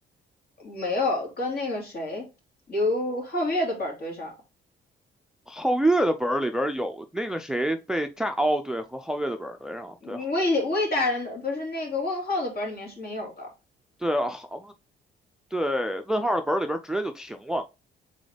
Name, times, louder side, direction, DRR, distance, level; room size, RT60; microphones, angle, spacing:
voice 1, 0.6-2.3 2.7-4.3 10.0-13.5, left 2 dB, 50° left, 2.6 m, -28 dB
voice 2, 5.5-10.3 14.0-14.7 15.5-17.6, right 1 dB, 5° right, 0.4 m, -27 dB
4.1 x 3.9 x 3.3 m
cardioid pair, 90°, 20 cm